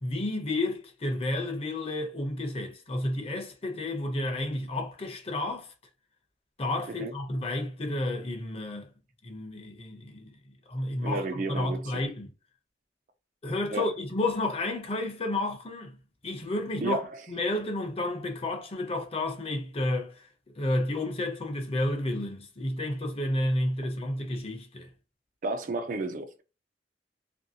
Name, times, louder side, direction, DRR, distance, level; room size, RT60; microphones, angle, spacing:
voice 1, 0.0-5.7 6.6-8.9 9.2-10.3 10.7-12.3 13.4-16.0 16.2-17.0 17.3-24.9, left 1 dB, 35° left, 0.6 m, -31 dB
voice 2, 11.0-11.8 13.7-13.9 16.8-17.2 25.4-26.4, right 3 dB, 50° right, 0.4 m, -32 dB
2.6 x 2.6 x 2.7 m
head